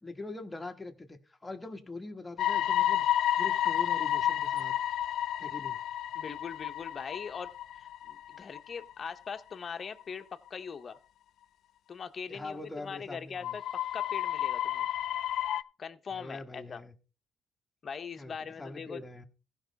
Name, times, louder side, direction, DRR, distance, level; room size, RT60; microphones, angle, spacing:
voice 1, 0.0-3.0 3.4-4.7 5.4-5.8 12.3-13.6 16.1-16.9 18.2-19.3, left 2 dB, 15° left, 1.3 m, -43 dB
sound 1, 2.4-9.1 9.5-9.6 10.0-10.1 13.4-15.6, left 11 dB, 70° left, 0.4 m, -31 dB
voice 2, 6.1-11.0 11.9-14.9 15.8-16.8 17.8-19.0, left 6 dB, 40° left, 0.9 m, -41 dB
15.5 x 5.5 x 4.0 m
cardioid pair, 90°, 0 cm